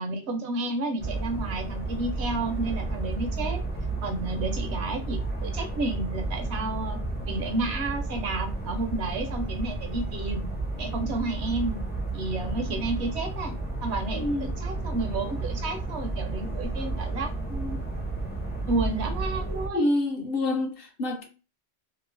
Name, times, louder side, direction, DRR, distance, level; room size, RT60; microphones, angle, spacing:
voice 1, 0.0-3.6 4.0-7.0 7.3-10.5 10.8-11.8 12.1-13.6 13.8-17.8 18.7-19.9, right 2 dB, 70° right, 0.9 m, -31 dB
sound 1, 1.0-19.7, right 2 dB, 15° left, 0.4 m, -32 dB
voice 2, 14.1-14.5 19.5-21.2, left 2 dB, 60° left, 0.7 m, -27 dB
2.9 x 2.0 x 2.4 m
omnidirectional pair, 1.2 m